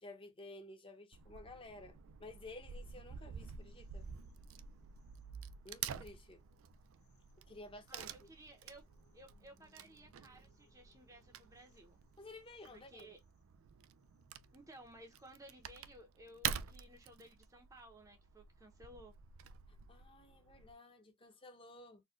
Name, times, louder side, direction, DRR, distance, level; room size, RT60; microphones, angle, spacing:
voice 1, 0.0-4.1 5.6-6.4 7.5-8.3 12.2-13.1 19.9-22.0, left 2 dB, 25° left, 0.7 m, -54 dB
Wood / Tearing, 1.1-20.7, right 8 dB, 65° right, 0.3 m, -48 dB
sound 1, 3.6-15.9, left 2 dB, 50° left, 1.6 m, -75 dB
voice 2, 7.9-8.8 9.1-12.0 12.7-13.2 14.5-19.1, right 1 dB, 15° right, 0.6 m, -57 dB
4.2 x 2.1 x 2.3 m
head